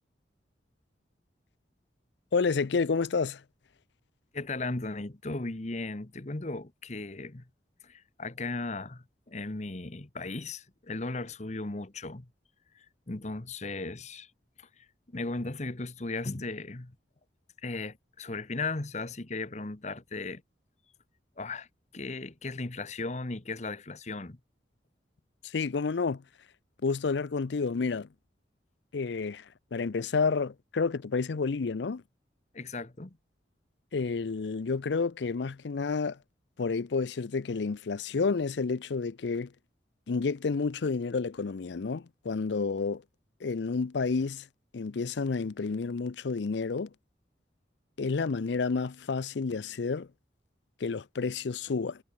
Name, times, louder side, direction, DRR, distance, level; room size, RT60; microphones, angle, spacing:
voice 1, 2.3-3.4 25.4-26.2 26.8-28.1 28.9-29.4 29.7-32.0 33.9-36.2 36.6-39.5 40.1-43.0 43.4-44.5 44.7-46.9 48.0-50.1 50.8-52.0, left 4 dB, 75° left, 0.5 m, -30 dB
voice 2, 4.3-7.5 7.8-12.3 12.7-14.3 14.6-16.9 17.6-20.4 21.4-21.7 21.9-24.4 32.5-33.2, left 3 dB, 40° left, 1.1 m, -36 dB
head